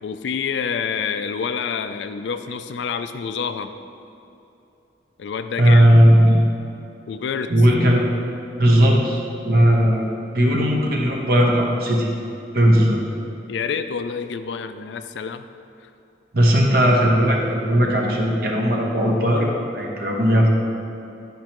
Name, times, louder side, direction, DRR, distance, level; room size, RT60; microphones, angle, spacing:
voice 1, 0.0-3.7 5.2-5.9 7.1-7.5 13.5-15.4 15.8-15.9, left 6 dB, 75° left, 10 dB, 0.4 m, -27 dB
voice 2, 5.6-6.4 7.5-8.1 8.6-12.1 12.5-13.0 16.3-20.5, equal, 55° right, -1 dB, 1.0 m, -17 dB
10.5 x 5.4 x 3.0 m, 2.8 s
head